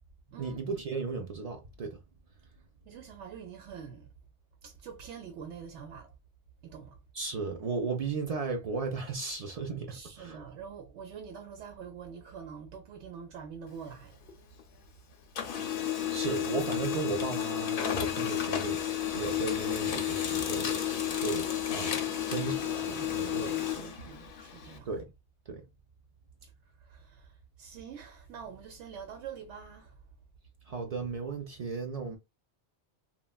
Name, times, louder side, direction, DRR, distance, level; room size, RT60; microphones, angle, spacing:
voice 1, 0.4-2.0 7.1-10.5 16.1-20.9 21.2-23.5 24.9-25.0 25.5-25.6 30.7-32.2, right 4 dB, 60° right, 0.4 m, -35 dB
voice 2, 2.9-4.1 4.6-6.1 6.6-7.0 9.9-14.2 22.8-25.0 26.4-26.5 26.8-30.0, right 7 dB, 85° right, 0.9 m, -45 dB
Printer, 13.7-14.9 15.2-24.8, left 10 dB, 60° left, 0.7 m, -32 dB
3.2 x 2.1 x 2.3 m
omnidirectional pair, 1.2 m